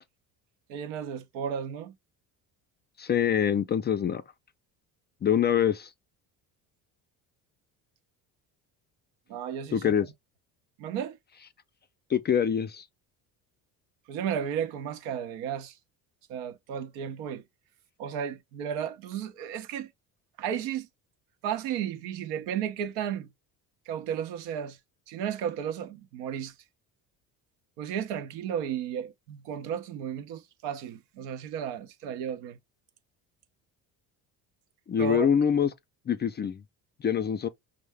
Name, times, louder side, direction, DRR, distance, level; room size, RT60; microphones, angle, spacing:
voice 1, 0.7-1.9 9.3-9.9 10.8-11.2 14.1-15.7 16.3-17.4 18.0-19.9 20.4-20.9 21.4-23.3 23.9-24.8 25.1-26.5 27.8-32.6 35.0-35.3, right 8 dB, 85° right, 0.7 m, -33 dB
voice 2, 3.0-4.2 5.2-5.9 9.7-10.1 12.1-12.8 34.9-35.7 36.1-36.6 37.0-37.5, left 8 dB, 25° left, 0.3 m, -25 dB
5.4 x 2.0 x 3.3 m
supercardioid pair, 80°, 41 cm